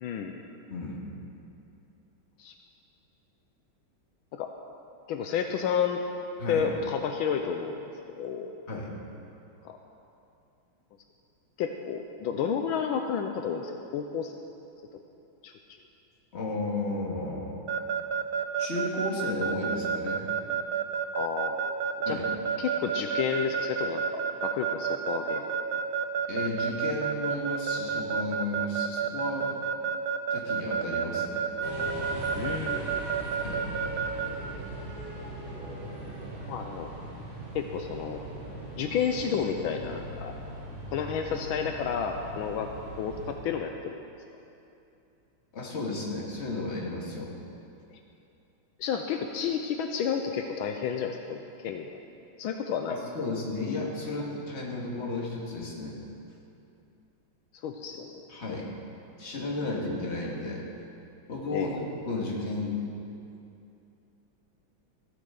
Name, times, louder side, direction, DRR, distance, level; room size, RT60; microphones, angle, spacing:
voice 1, 0.0-0.4 2.4-2.5 4.3-4.5 5.1-6.0 6.5-7.8 8.2-8.5 9.6-9.8 11.6-14.3 14.9-15.0 15.4-15.5 21.1-21.6 22.1-22.2 22.6-25.4 32.3-33.3 36.5-36.9 37.5-38.2 38.8-40.3 40.9-42.7 43.0-44.0 48.8-51.9 52.4-53.0 57.6-58.2 61.5-61.8, left 7 dB, 80° left, 4 dB, 1.4 m, -31 dB
voice 2, 0.7-1.1 6.4-6.7 8.7-8.9 16.3-17.6 18.6-20.2 22.1-22.3 26.3-29.5 30.3-31.5 33.4-33.6 45.5-47.3 52.9-56.0 58.3-58.7 59.2-60.7 61.3-62.8, left 2 dB, 35° left, -2 dB, 2.0 m, -33 dB
Keyboard (musical) / Alarm, 17.7-34.3, right 7 dB, 75° right, 1.4 m, -29 dB
sound 1, 31.6-43.4, right 1 dB, 30° right, 2.9 m, -40 dB
15.0 x 13.0 x 3.9 m, 2.7 s
omnidirectional pair, 2.3 m